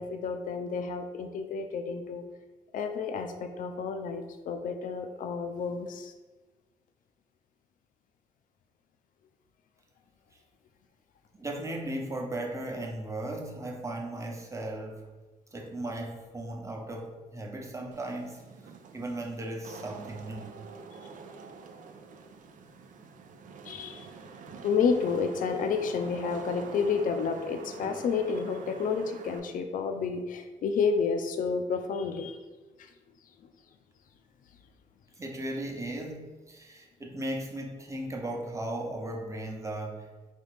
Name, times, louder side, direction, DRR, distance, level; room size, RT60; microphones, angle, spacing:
voice 1, 0.0-2.2 2.7-6.1 23.6-24.1 24.6-32.4 32.8-32.9, left 5 dB, 70° left, 7 dB, 0.5 m, -30 dB
voice 2, 11.3-15.1 15.5-20.5 35.2-40.3, right 1 dB, 20° right, 1 dB, 0.9 m, -37 dB
Wind / Rain, 17.9-29.4, right 5 dB, 65° right, 0.5 m, -46 dB
4.1 x 2.9 x 3.3 m, 1.3 s
supercardioid pair, 60°, 15 cm